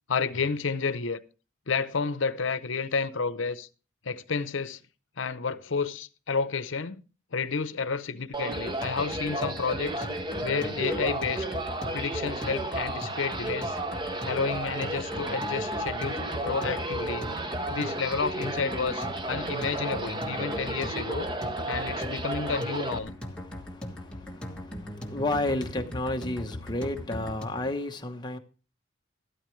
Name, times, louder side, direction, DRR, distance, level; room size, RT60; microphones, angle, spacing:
voice 1, 0.1-1.2 1.7-3.7 4.0-4.8 5.2-7.0 7.3-10.1 10.4-11.5 11.9-13.8 14.3-17.3 17.7-21.3 21.7-23.2, left 5 dB, 75° left, 0.8 m, -30 dB
sound 1, 8.3-23.0, right 1 dB, 20° right, 0.8 m, -33 dB
sound 2, 8.5-27.7, left 1 dB, 5° left, 1.4 m, -39 dB
voice 2, 23.3-28.4, left 2 dB, 20° left, 1.0 m, -32 dB
13.5 x 12.5 x 3.2 m
head